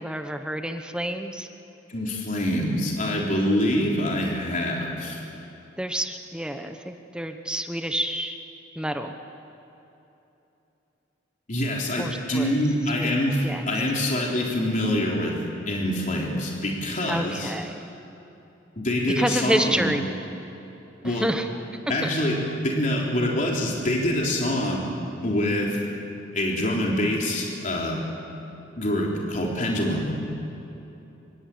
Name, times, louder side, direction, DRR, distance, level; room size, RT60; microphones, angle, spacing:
voice 1, 0.0-1.5 5.8-8.4 8.8-9.1 12.0-12.6 13.0-13.6 17.1-17.9 19.1-20.1 21.0-21.5 22.0-22.1, right 1 dB, 5° right, 6 dB, 1.0 m, -28 dB
voice 2, 1.9-5.2 11.5-15.4 15.7-17.5 18.8-19.9 21.0-21.3 21.9-22.4 22.6-24.9 25.2-25.8 26.3-28.0 28.8-30.1, left 1 dB, 45° left, -2 dB, 3.8 m, -25 dB
26.5 x 24.0 x 8.7 m, 3.0 s
head